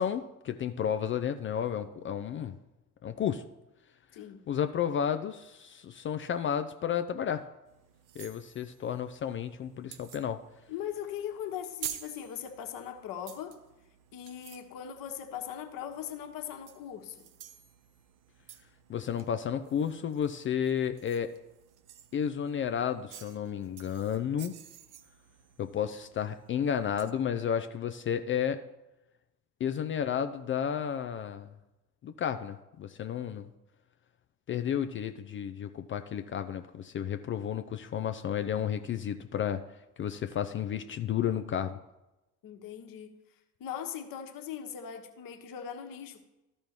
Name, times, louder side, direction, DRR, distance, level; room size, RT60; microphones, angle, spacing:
voice 1, 0.0-2.5 3.0-3.4 4.5-7.4 8.2-10.4 18.9-21.3 22.1-24.5 25.6-28.6 29.6-31.5 32.0-33.5 34.5-39.6 40.0-41.8, left 8 dB, 25° left, 8 dB, 0.5 m, -32 dB
voice 2, 4.1-4.4 10.7-13.6 14.1-17.3 42.4-43.1 43.6-46.2, left 9 dB, 45° left, 5 dB, 1.3 m, -40 dB
sound 1, 7.7-27.1, right 10 dB, 45° right, 0.8 m, -50 dB
14.0 x 5.5 x 3.0 m, 0.99 s
figure-of-eight pair, 55°, 47 cm